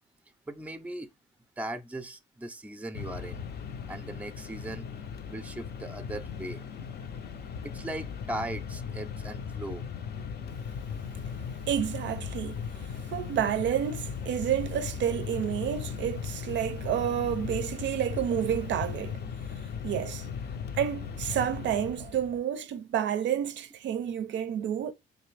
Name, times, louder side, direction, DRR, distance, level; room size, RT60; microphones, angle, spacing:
voice 1, 0.5-1.1 1.6-3.4 3.9-4.9 5.3-6.6 7.6-9.8, right 1 dB, 5° right, 0.5 m, -38 dB
Mechanisms, 2.9-22.4, left 6 dB, 55° left, 0.5 m, -37 dB
voice 2, 11.7-12.6 13.1-19.2 19.8-20.3 20.7-24.9, right 9 dB, 65° right, 0.4 m, -30 dB
3.8 x 2.9 x 3.2 m
cardioid pair, 90°, 20 cm